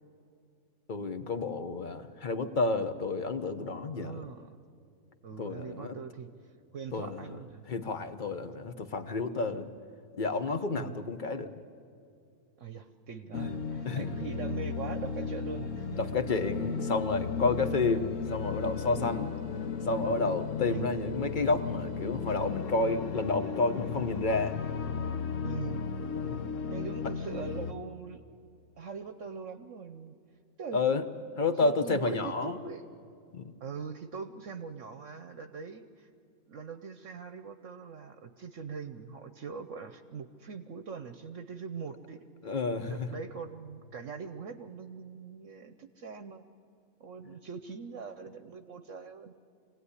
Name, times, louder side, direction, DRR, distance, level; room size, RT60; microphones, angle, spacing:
voice 1, 0.9-4.2 5.4-5.9 6.9-7.2 7.7-9.7 10.2-11.5 13.8-14.1 16.0-19.3 19.8-24.6 26.1-26.4 30.7-31.0 31.4-32.6 33.3-33.5 42.4-43.1, left 3 dB, 35° left, 10 dB, 1.1 m, -30 dB
voice 2, 3.9-4.6 5.2-6.3 6.7-7.6 10.7-11.0 12.6-16.1 18.9-19.3 20.7-20.9 25.4-25.9 26.7-28.2 28.8-30.1 30.6-30.8 31.6-32.8 33.6-36.1 36.5-42.6 42.9-46.4 47.0-49.3, right 5 dB, 60° right, 9 dB, 1.1 m, -42 dB
sound 1, 13.3-27.7, left 5 dB, 60° left, 1.3 m, -35 dB
25.0 x 18.0 x 9.9 m, 2.5 s
omnidirectional pair, 1.6 m